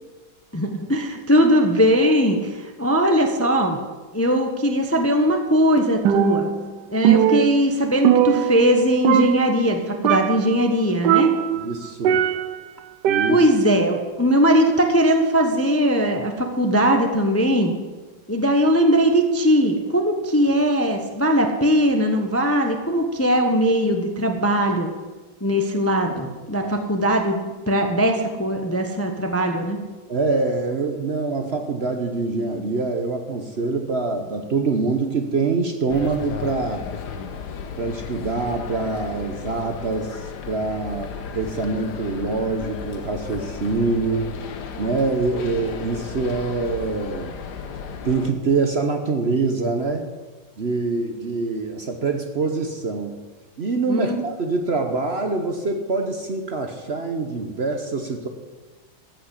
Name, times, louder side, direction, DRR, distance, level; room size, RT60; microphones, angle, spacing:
voice 1, 0.5-3.8 4.1-6.5 6.9-11.3 13.3-17.8 18.3-24.9 25.4-29.8 53.9-54.2, equal, 10° left, 4 dB, 0.7 m, -20 dB
Percussion, 6.0-6.7 7.0-8.8 9.0-9.7 10.0-10.6 11.0-12.6 13.0-13.7, right 10 dB, 80° right, 1.3 m, -20 dB
voice 2, 11.5-12.2 13.0-13.4 26.6-26.7 30.1-36.8 37.8-44.4 44.8-47.3 48.0-50.1 50.6-53.2 53.6-58.3, right 3 dB, 45° right, 5 dB, 1.0 m, -25 dB
sound 1, 35.9-48.3, left 6 dB, 70° left, 1.6 m, -34 dB
14.0 x 6.4 x 8.2 m, 1.3 s
omnidirectional pair, 1.8 m